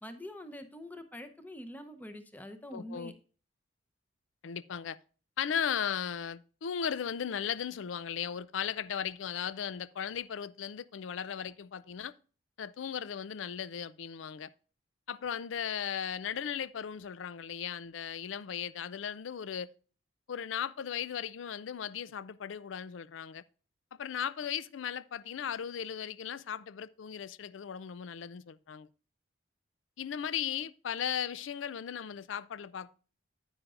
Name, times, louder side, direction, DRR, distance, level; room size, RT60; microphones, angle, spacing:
voice 1, 0.0-3.1, left 1 dB, 10° left, 0.7 m, -45 dB
voice 2, 2.7-3.1 4.4-5.0 5.4-12.1 12.6-14.5 15.1-19.7 20.3-23.4 23.9-28.9 30.0-32.9, left 8 dB, 85° left, 0.4 m, -37 dB
9.7 x 8.8 x 2.5 m
head